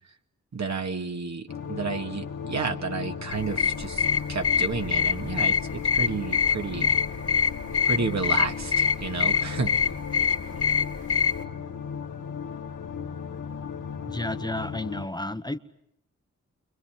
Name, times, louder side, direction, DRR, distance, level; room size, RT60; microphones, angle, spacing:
voice 1, 0.5-4.0 4.3-6.9 7.9-9.7, right 4 dB, 60° right, 4 dB, 2.4 m, -31 dB
sound 1, 1.5-15.1, left 6 dB, 75° left, 1.8 m, -36 dB
sound 2, 3.3-11.4, left 7 dB, 50° left, 2.4 m, -25 dB
voice 2, 14.1-15.6, left 1 dB, 15° left, 9 dB, 1.3 m, -32 dB
29.5 x 25.0 x 7.5 m, 0.75 s
cardioid pair, 45°, 31 cm